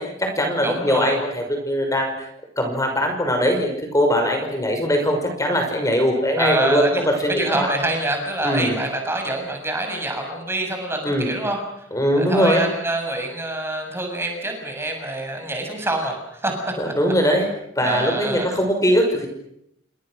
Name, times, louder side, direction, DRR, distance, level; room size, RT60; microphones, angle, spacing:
voice 1, 0.0-2.3 2.6-6.9 7.2-7.7 8.4-8.7 11.0-11.3 11.9-12.6 16.8-17.5 17.7-19.3, equal, 15° left, 4 dB, 5.9 m, -21 dB
voice 2, 0.6-1.2 6.4-7.0 7.3-11.9 12.2-16.7 17.8-18.5, right 1 dB, 15° right, 3 dB, 7.1 m, -26 dB
29.5 x 26.0 x 6.5 m, 0.76 s
head